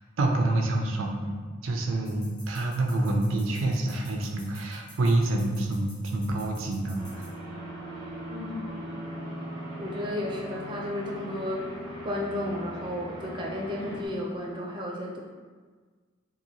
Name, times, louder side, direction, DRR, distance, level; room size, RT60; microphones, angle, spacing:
voice 1, 0.2-7.3, right 2 dB, 90° right, 2 dB, 0.4 m, -27 dB
sound 1, 2.0-7.3, left 1 dB, 35° left, 1.0 m, -51 dB
sound 2, 6.9-14.1, equal, 60° left, 1.1 m, -39 dB
voice 2, 8.3-8.9 9.8-15.2, left 1 dB, 25° right, -2 dB, 0.4 m, -33 dB
2.8 x 2.6 x 2.7 m, 1.5 s
head